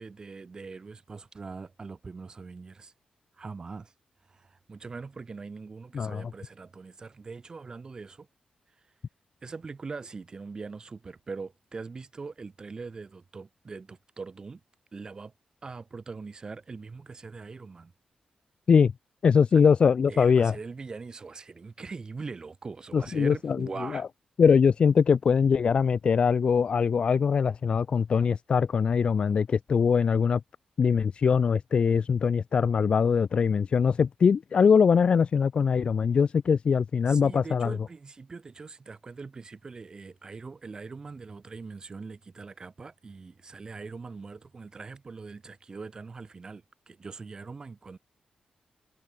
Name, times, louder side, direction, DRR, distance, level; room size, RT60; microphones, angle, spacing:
voice 1, 0.0-2.9 3.4-3.9 4.3-8.3 9.4-14.6 14.9-15.3 15.6-17.9 19.5-19.6 20.1-24.0 37.1-48.0, right 4 dB, 30° right, 1.6 m, -42 dB
voice 2, 19.2-20.6 22.9-24.0 24.4-30.4 30.8-37.8, left 6 dB, 45° left, 0.5 m, -22 dB
wide cardioid pair, 140°, 2 cm